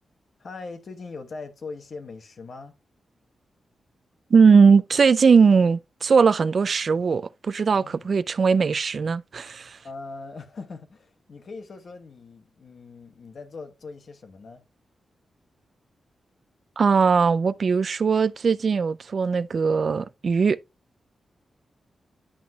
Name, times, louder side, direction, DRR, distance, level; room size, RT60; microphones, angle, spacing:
voice 1, 0.4-2.7 7.7-8.1 9.8-14.6, left 4 dB, 60° left, 1.2 m, -40 dB
voice 2, 4.3-9.8 16.8-20.6, right 5 dB, 55° right, 0.3 m, -19 dB
10.0 x 5.9 x 2.3 m
cardioid pair, 85°, 0 cm